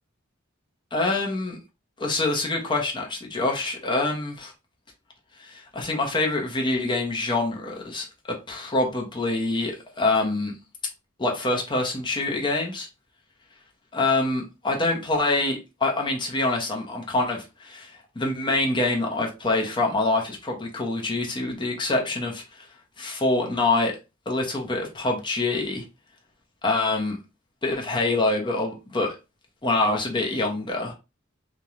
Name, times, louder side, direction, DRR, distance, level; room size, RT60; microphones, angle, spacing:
voice 1, 0.9-1.6 2.0-4.5 5.4-8.1 8.5-10.5 11.2-12.9 13.9-22.7 23.0-23.9 24.3-25.8 26.6-27.2 27.6-29.2 29.6-30.9, left 2 dB, 25° left, 0.7 m, -25 dB
3.0 x 2.2 x 2.4 m
head